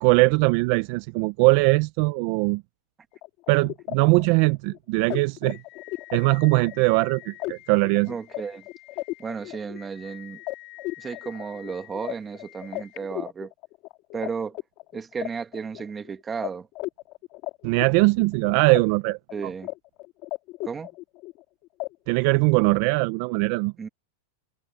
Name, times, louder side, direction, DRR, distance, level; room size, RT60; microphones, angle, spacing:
voice 1, 0.0-2.6 3.5-5.6 6.1-8.1 17.6-19.2 22.1-23.7, right 25 dB, 40° right, 0.4 m, -21 dB
sound 1, 3.1-14.3 14.5-16.1 16.4-16.5 16.8-18.8 19.1-19.7 20.0-21.4 21.8-21.9, left 20 dB, 35° left, 2.2 m, -36 dB
voice 2, 8.1-8.6 9.2-10.4 11.0-13.5 14.1-14.6 14.9-16.7 19.3-19.7 20.6-20.9 23.8-23.9, right 5 dB, 10° right, 1.5 m, -33 dB
supercardioid pair, 170°, 0 cm